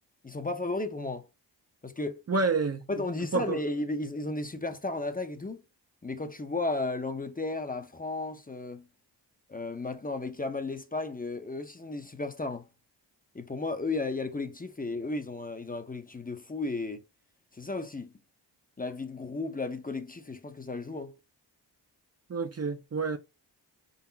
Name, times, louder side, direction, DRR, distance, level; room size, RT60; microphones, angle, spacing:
voice 1, 0.2-1.3 1.8-2.2 2.9-5.6 6.0-8.9 9.5-12.7 13.3-17.0 17.5-18.1 18.8-21.2, left 2 dB, 20° left, 0.6 m, -34 dB
voice 2, 2.3-2.8 3.3-3.6 22.3-23.2, right 4 dB, 35° right, 0.5 m, -28 dB
4.7 x 4.0 x 2.7 m
wide cardioid pair, 100°, 43 cm